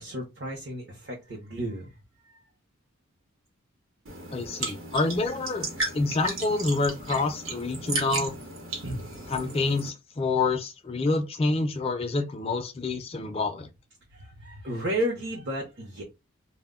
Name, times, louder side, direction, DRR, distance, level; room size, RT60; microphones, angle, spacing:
voice 1, 0.0-1.9 2.3-2.4 8.8-9.2 14.1-16.0, right 1 dB, 55° right, 0.7 m, -33 dB
sound 1, 4.1-9.9, right 2 dB, 75° right, 0.9 m, -35 dB
voice 2, 4.3-5.7 5.9-8.3 9.3-13.7, left 3 dB, 25° left, 0.4 m, -27 dB
2.1 x 2.1 x 3.5 m
head